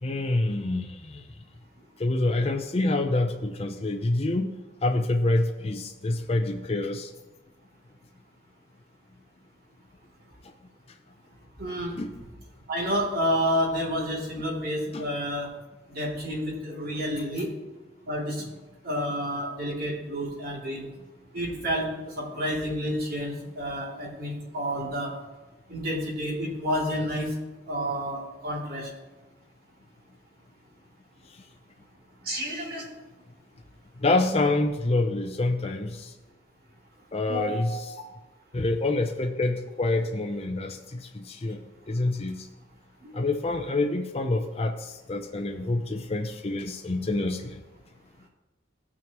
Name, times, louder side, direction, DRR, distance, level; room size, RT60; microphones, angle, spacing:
voice 1, 0.0-1.2 2.0-4.5 4.8-7.1 12.0-12.1 14.9-15.1 34.0-36.1 37.1-37.9 38.5-42.5 43.1-47.6, left 2 dB, 30° left, 4 dB, 0.5 m, -27 dB
voice 2, 11.6-11.9 12.7-15.5 15.9-17.5 18.1-18.4 18.8-20.9 21.3-21.9 22.2-25.1 25.7-27.3 27.7-28.9 32.2-32.8 37.3-37.7 43.0-43.2, equal, 50° right, -3 dB, 2.6 m, -29 dB
16.5 x 6.2 x 3.0 m, 1.2 s
head